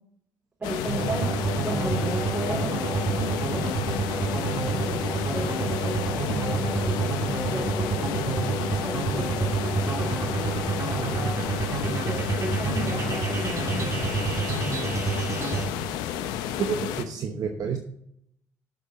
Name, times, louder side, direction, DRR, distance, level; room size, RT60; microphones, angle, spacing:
sound 1, 0.6-17.0, left 9 dB, 85° left, 0.7 m, -31 dB
voice 1, 0.6-4.0 4.4-7.2 7.5-11.4 11.8-14.6, right 1 dB, 25° right, 0 dB, 4.1 m, -35 dB
sound 2, 0.9-15.6, right 4 dB, 45° right, 2.4 m, -28 dB
voice 2, 16.6-17.8, right 6 dB, 60° right, 4 dB, 1.0 m, -29 dB
8.2 x 6.6 x 5.3 m, 0.72 s
supercardioid pair, 55°, 7 cm